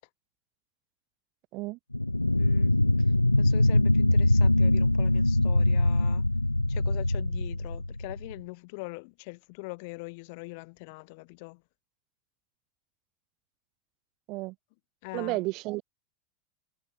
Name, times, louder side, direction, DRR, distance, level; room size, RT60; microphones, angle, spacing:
sound 1, 1.9-8.4, left 2 dB, 85° left, 1.0 m, -23 dB
voice 1, 2.4-2.7 3.4-6.3 6.7-11.6 15.0-15.5, left 29 dB, 50° left, 5.0 m, -42 dB
voice 2, 15.1-15.8, right 22 dB, 45° right, 1.8 m, -32 dB
figure-of-eight pair, 85°, 0 cm